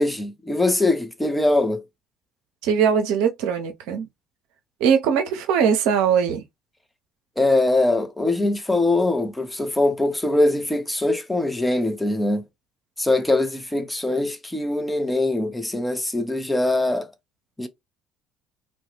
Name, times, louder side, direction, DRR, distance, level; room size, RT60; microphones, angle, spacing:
voice 1, 0.0-1.8 7.4-12.4 13.0-17.1 17.6-17.7, left 2 dB, 10° left, 0.6 m, -22 dB
voice 2, 2.6-4.1 4.8-6.4, right 7 dB, 65° right, 0.6 m, -21 dB
2.3 x 2.1 x 2.8 m
figure-of-eight pair, 55°, 0 cm